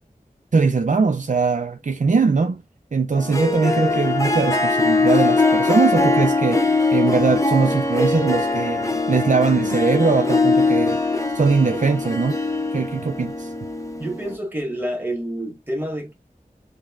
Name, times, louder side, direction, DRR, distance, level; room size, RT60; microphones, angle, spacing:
voice 1, 0.5-2.6 2.9-11.0 11.3-12.4 12.7-13.5, right 4 dB, 55° right, 0.5 m, -21 dB
Harp, 3.1-14.4, left 3 dB, 20° left, 0.7 m, -21 dB
voice 2, 14.0-16.1, right 1 dB, 15° right, 1.5 m, -28 dB
5.2 x 2.1 x 2.4 m
wide cardioid pair, 50°, 15 cm